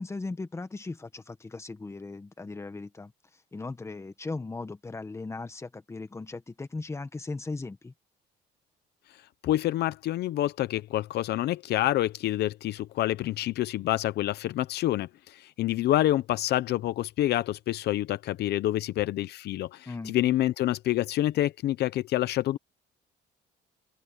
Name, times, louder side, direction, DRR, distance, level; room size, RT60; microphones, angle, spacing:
voice 1, 0.0-3.1 3.5-7.9 19.9-20.2, left 3 dB, 15° left, 1.4 m, -37 dB
voice 2, 9.4-22.6, left 14 dB, 65° left, 0.8 m, -27 dB
open air
cardioid pair, 130°, 18 cm